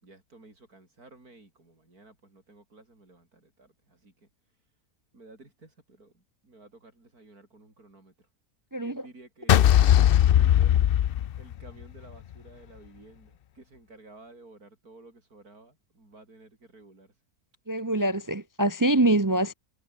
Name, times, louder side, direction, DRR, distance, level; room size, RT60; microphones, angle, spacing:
voice 1, 0.0-4.3 5.1-8.3 8.7-9.9 10.3-17.2, right 2 dB, 85° right, 6.3 m, -53 dB
sound 1, 9.5-11.8, left 11 dB, 70° left, 0.5 m, -19 dB
voice 2, 17.7-19.5, right 1 dB, 20° right, 0.5 m, -24 dB
omnidirectional pair, 1.6 m